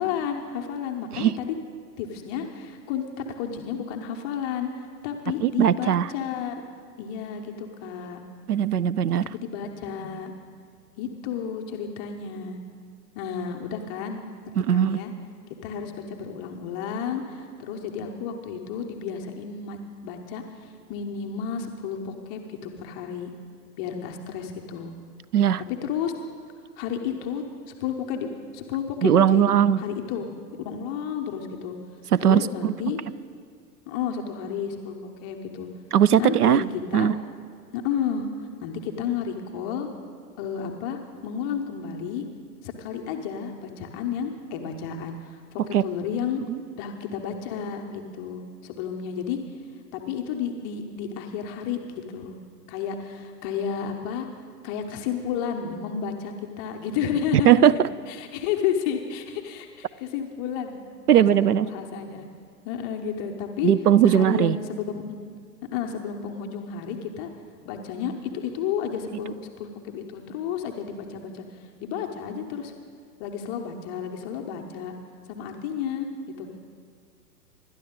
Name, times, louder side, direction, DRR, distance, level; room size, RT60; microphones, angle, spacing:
voice 1, 0.0-1.5 2.0-6.5 7.0-8.2 9.3-10.3 11.0-12.6 13.1-14.2 14.7-15.1 15.6-23.3 23.8-24.9 25.7-26.1 26.8-27.4 27.8-30.2 30.6-31.8 32.2-33.0 33.9-35.7 36.2-36.6 36.9-37.1 37.7-38.3 38.6-39.9 40.4-42.2 42.6-46.4 46.8-49.4 49.9-52.4 52.7-54.3 54.6-57.7 58.1-60.8 61.1-61.3 61.6-62.3 62.6-63.7 64.0-65.0 65.7-67.3 67.6-72.7 73.2-74.9 75.3-76.1 76.4-76.5, left 7 dB, 15° left, 3 dB, 0.5 m, -31 dB
voice 2, 5.4-6.1 8.5-9.3 14.6-15.0 25.3-25.6 29.0-29.8 32.1-32.7 35.9-36.6 36.9-37.1 45.7-45.8 46.5-46.6 57.5-57.9 61.1-61.7 63.6-64.6, right 10 dB, 65° right, 20 dB, 0.6 m, -19 dB
26.5 x 12.0 x 3.6 m, 2.1 s
figure-of-eight pair, 110°, 49 cm